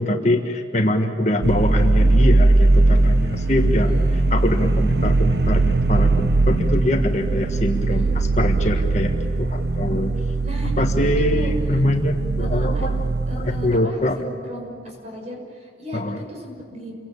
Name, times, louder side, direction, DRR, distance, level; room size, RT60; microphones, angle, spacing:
voice 1, 0.0-4.0 4.3-10.1 10.8-13.1 13.3-14.2 15.9-16.2, left 1 dB, 40° left, 4 dB, 1.6 m, -23 dB
sound 1, 1.4-13.8, right 2 dB, 65° right, 1.0 m, -19 dB
voice 2, 3.7-4.2 7.9-8.1 10.4-10.7 11.0-11.5 12.4-13.0 13.3-16.0 16.3-16.9, left 1 dB, 35° right, 1 dB, 6.1 m, -36 dB
29.0 x 23.0 x 8.7 m, 2.4 s
head